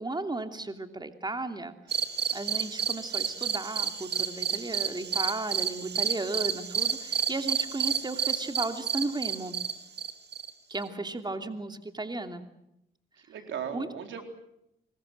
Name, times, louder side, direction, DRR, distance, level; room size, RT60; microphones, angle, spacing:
voice 1, 0.0-1.7 2.3-9.6 10.7-12.4 13.7-13.9, right 2 dB, 20° right, 7 dB, 2.8 m, -35 dB
sound 1, 1.9-10.9, right 7 dB, 60° right, 2.2 m, -31 dB
voice 2, 11.0-11.4 13.2-14.2, right 8 dB, 85° right, 5 dB, 4.0 m, -39 dB
25.5 x 22.0 x 7.8 m, 0.82 s
cardioid pair, 60°, 19 cm